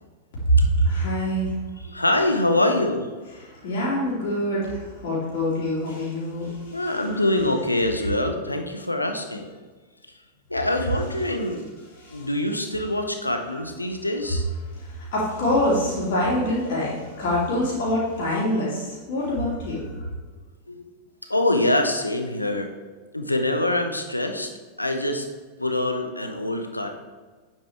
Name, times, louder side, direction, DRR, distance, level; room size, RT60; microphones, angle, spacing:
voice 1, 0.4-1.6 3.4-7.3 7.9-8.0 12.0-12.3 13.5-13.6 14.8-20.1, equal, 50° left, -6 dB, 2.9 m, -25 dB
voice 2, 1.8-3.1 6.7-9.5 10.5-11.6 12.1-14.5 20.7-20.8 21.3-22.7 23.1-24.5 24.8-25.3 25.6-27.0, left 1 dB, 85° left, 5 dB, 0.9 m, -24 dB
9.0 x 7.5 x 3.6 m, 1.4 s
figure-of-eight pair, 90°, 0 cm